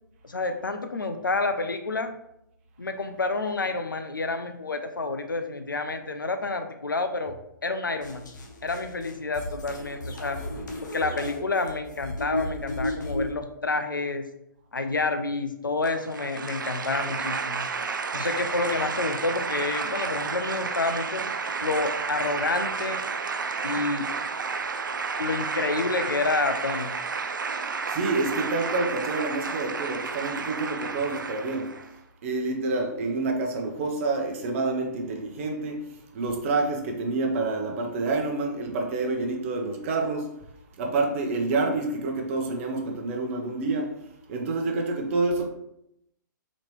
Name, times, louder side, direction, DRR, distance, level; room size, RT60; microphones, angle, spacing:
voice 1, 0.2-2.2 2.8-7.4 7.6-8.2 8.6-10.4 10.8-14.3 14.7-17.7 18.1-21.2 21.6-23.0 23.6-24.1 25.2-26.9, left 3 dB, 85° left, 0.4 m, -29 dB
sound 1, 8.0-13.3, left 1 dB, 65° left, 0.8 m, -34 dB
sound 2, 15.8-31.9, right 5 dB, 75° right, 0.4 m, -31 dB
voice 2, 27.9-31.8 32.2-40.3 40.8-43.9 44.3-45.5, right 3 dB, 40° right, 0.8 m, -28 dB
4.1 x 2.9 x 3.1 m
figure-of-eight pair, 120°, 11 cm